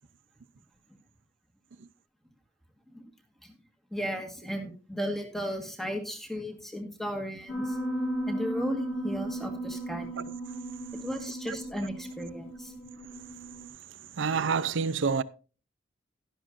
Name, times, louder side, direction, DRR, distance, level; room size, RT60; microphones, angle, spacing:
voice 1, 3.9-7.8 8.3-10.2 11.0-12.7, equal, ahead, 1.5 m, -35 dB
Piano, 7.5-13.7, right 1 dB, 35° left, 4.8 m, -35 dB
voice 2, 14.0-15.2, right 5 dB, 75° right, 0.5 m, -28 dB
11.5 x 11.0 x 2.5 m
head